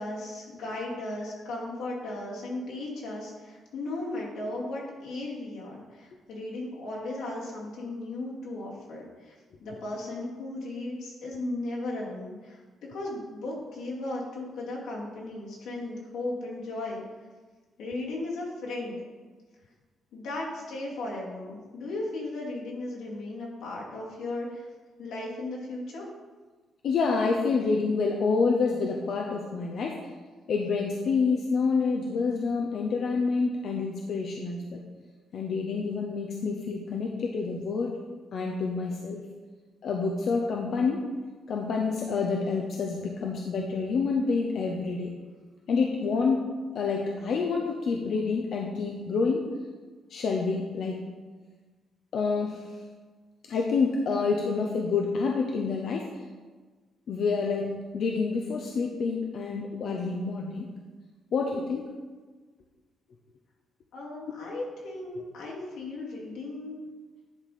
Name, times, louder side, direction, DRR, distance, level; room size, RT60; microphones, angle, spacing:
voice 1, 0.0-9.4 9.6-17.0 17.8-19.0 20.1-24.7 25.0-26.1 63.9-66.8, left 2 dB, 85° left, -4 dB, 2.4 m, -36 dB
voice 2, 26.8-30.0 30.5-34.8 35.3-37.9 38.3-39.2 39.8-41.0 41.5-45.1 45.7-46.4 46.7-49.5 50.1-51.0 52.1-52.7 53.5-56.1 57.1-60.7 61.3-61.9 65.2-65.3, left 4 dB, 50° left, 0 dB, 0.7 m, -28 dB
10.5 x 4.2 x 5.0 m, 1.4 s
cardioid pair, 170°, 0 cm